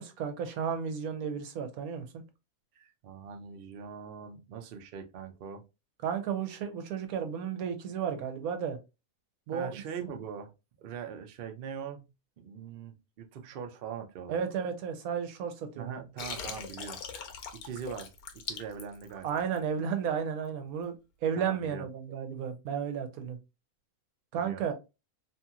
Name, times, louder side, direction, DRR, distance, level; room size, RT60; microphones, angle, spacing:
voice 1, 0.0-2.2 6.0-8.8 9.5-9.7 14.3-16.0 19.2-21.0 21.2-23.4 24.3-24.7, right 7 dB, 80° right, 1.1 m, -33 dB
voice 2, 2.7-5.6 9.5-10.5 10.8-12.1 12.4-14.4 15.8-17.0 17.6-18.1 18.5-19.4 21.4-21.9 24.4-24.6, right 7 dB, 65° right, 0.5 m, -41 dB
Water, 16.2-19.6, left 6 dB, 85° left, 1.1 m, -41 dB
2.8 x 2.8 x 2.3 m
omnidirectional pair, 1.5 m